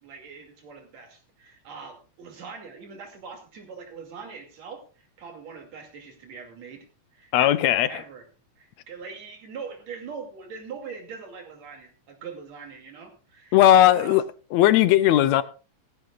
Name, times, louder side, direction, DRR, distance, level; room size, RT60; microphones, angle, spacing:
voice 1, 0.0-6.8 7.1-8.2 8.6-14.2, right 5 dB, 65° right, 3.7 m, -42 dB
voice 2, 7.3-8.0 13.5-14.2 14.5-15.4, left 12 dB, 75° left, 1.8 m, -17 dB
17.5 x 14.5 x 2.4 m
omnidirectional pair, 3.4 m